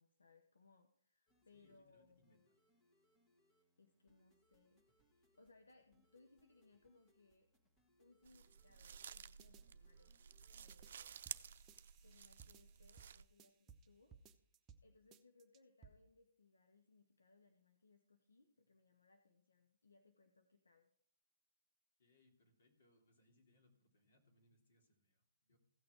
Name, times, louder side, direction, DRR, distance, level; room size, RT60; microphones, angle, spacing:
voice 1, 0.0-2.5 3.6-7.5 8.0-10.2 10.5-11.2 12.0-14.2 14.8-20.9, left 3 dB, 85° left, 6 dB, 1.0 m, -70 dB
sound 1, 1.3-10.7, equal, 15° left, 1.7 m, -79 dB
voice 2, 1.5-2.4 22.0-25.6, left 2 dB, 65° left, 3 dB, 3.2 m, -74 dB
sound 2, 8.3-13.2, right 7 dB, 60° right, 0.5 m, -54 dB
sound 3, 9.4-9.6 10.7-10.9 11.3-13.9 14.1-14.8 15.1-15.9, right 6 dB, 20° right, 0.9 m, -63 dB
16.0 x 6.4 x 4.6 m, 0.65 s
hypercardioid pair, 135°, 0 cm